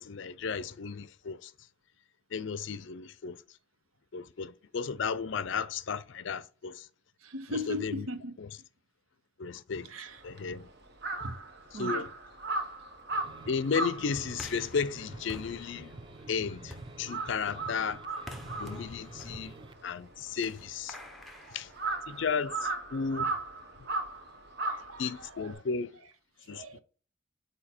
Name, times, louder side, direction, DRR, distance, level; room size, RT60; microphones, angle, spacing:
voice 1, 0.0-1.5 2.3-3.4 4.1-6.9 7.5-8.0 9.4-9.9 10.2-10.7 11.8-12.1 13.5-15.9 16.3-18.0 18.6-21.0 21.5-21.7 22.1-23.3 25.0-25.9 26.5-26.8, left 5 dB, 60° left, 0.4 m, -34 dB
voice 2, 7.2-8.4 9.8-10.2 11.2-11.4 11.7-12.1 19.3-19.4 21.2-21.6 24.1-24.2 24.6-25.6 26.4-26.8, left 1 dB, 90° right, 0.8 m, -40 dB
Crow, 10.1-16.6 16.9-25.5, right 3 dB, 50° right, 1.0 m, -37 dB
sound 1, 13.1-19.8, right 2 dB, 25° right, 0.4 m, -49 dB
sound 2, 14.3-22.4, left 1 dB, ahead, 0.7 m, -49 dB
8.2 x 2.8 x 4.3 m
head